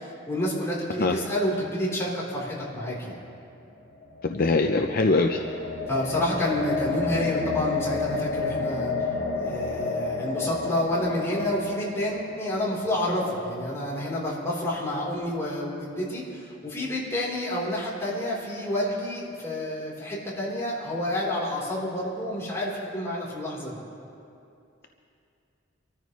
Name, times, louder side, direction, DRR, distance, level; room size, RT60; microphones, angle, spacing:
voice 1, 0.0-3.2 5.9-23.8, left 1 dB, 15° left, -6 dB, 3.6 m, -29 dB
sound 1, 3.9-14.1, left 3 dB, 80° left, 2.0 m, -31 dB
voice 2, 4.2-5.4, left 3 dB, 50° left, 4 dB, 0.6 m, -22 dB
25.0 x 14.0 x 3.1 m, 2.6 s
head